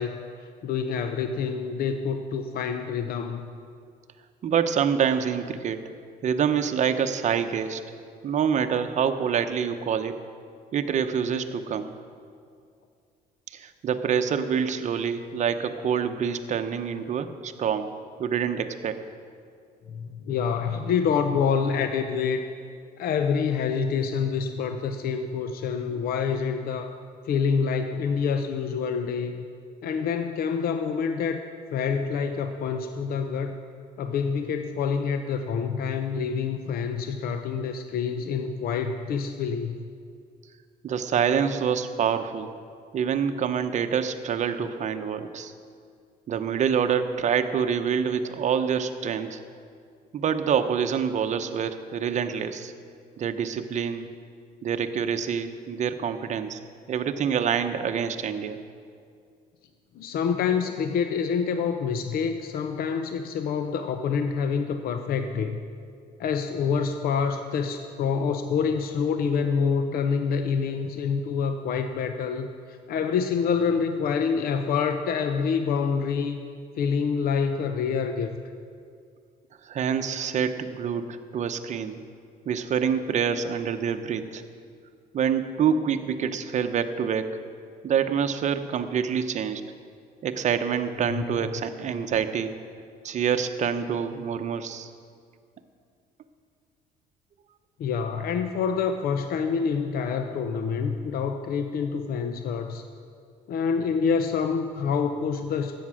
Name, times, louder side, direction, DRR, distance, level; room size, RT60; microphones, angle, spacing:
voice 1, 0.0-3.4 19.9-22.4 23.0-27.0 27.3-29.5 29.8-31.4 31.7-33.6 34.0-39.8 59.9-65.6 66.2-76.4 76.8-78.3 91.1-91.2 97.8-102.8 103.5-105.8, left 6 dB, 60° left, 7 dB, 0.7 m, -27 dB
voice 2, 4.4-5.8 6.2-7.8 8.2-10.2 10.7-11.9 13.5-19.0 40.8-42.5 42.9-45.5 46.3-49.4 50.1-52.7 53.2-54.1 54.6-56.6 56.9-58.6 79.6-82.0 82.5-84.4 85.1-87.4 87.8-89.6 90.2-92.6 93.0-94.9, right 7 dB, 45° right, 8 dB, 0.8 m, -26 dB
13.5 x 8.7 x 6.3 m, 2.3 s
cardioid pair, 110°, 17 cm